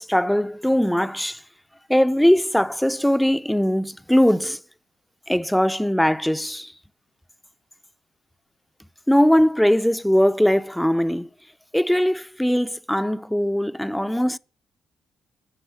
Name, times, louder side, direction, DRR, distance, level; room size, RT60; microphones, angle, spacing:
voice 1, 0.0-1.4 1.9-4.6 5.3-6.7 9.1-11.3 11.7-14.4, equal, 5° left, 0.5 m, -20 dB
12.5 x 7.4 x 8.4 m
cardioid pair, 90°, 0 cm